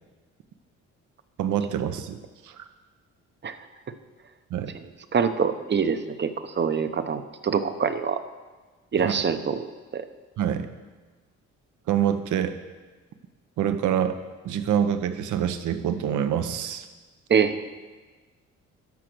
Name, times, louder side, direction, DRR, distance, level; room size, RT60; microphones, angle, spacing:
voice 1, 1.4-2.2 2.4-2.5 4.5-4.7 9.0-9.2 10.4-10.7 11.9-12.5 13.6-14.2 14.4-16.9, right 9 dB, 75° right, 9 dB, 0.9 m, -26 dB
voice 2, 5.1-6.3 6.6-8.2 8.9-9.7 9.9-10.0 17.3-17.5, right 6 dB, 35° right, 10 dB, 0.8 m, -24 dB
13.0 x 5.1 x 6.2 m, 1.3 s
cardioid pair, 90°, 30 cm